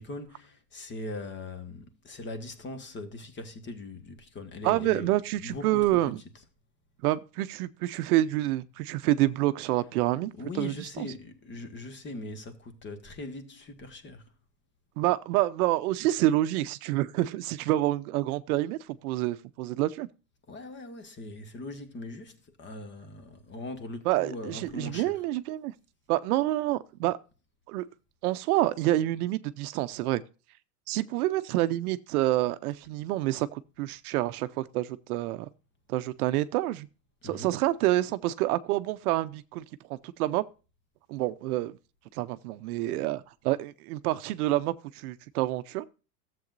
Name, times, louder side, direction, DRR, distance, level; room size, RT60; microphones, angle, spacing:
voice 1, 0.0-5.1 5.4-6.0 10.4-14.2 20.5-25.1 37.2-37.6, left 2 dB, 25° left, 1.5 m, -40 dB
voice 2, 4.6-6.2 7.0-11.1 15.0-20.1 24.1-25.7 26.1-27.2 27.7-27.9 28.2-30.2 30.9-35.5 35.9-36.9 37.2-39.6 39.9-40.4 41.1-41.7 42.1-45.9, right 16 dB, 65° right, 0.7 m, -28 dB
13.0 x 7.8 x 2.5 m
supercardioid pair, 130°, 48 cm